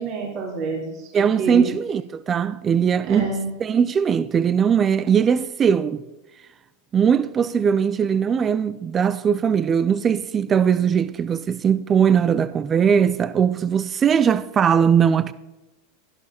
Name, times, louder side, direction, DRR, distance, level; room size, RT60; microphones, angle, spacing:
voice 1, 0.0-1.7 3.0-3.5, right 4 dB, 50° right, 4.1 m, -28 dB
voice 2, 1.1-3.3 3.6-6.0 6.9-15.3, right 7 dB, 30° right, 0.5 m, -20 dB
16.5 x 12.5 x 4.3 m
hypercardioid pair, 105°, 0 cm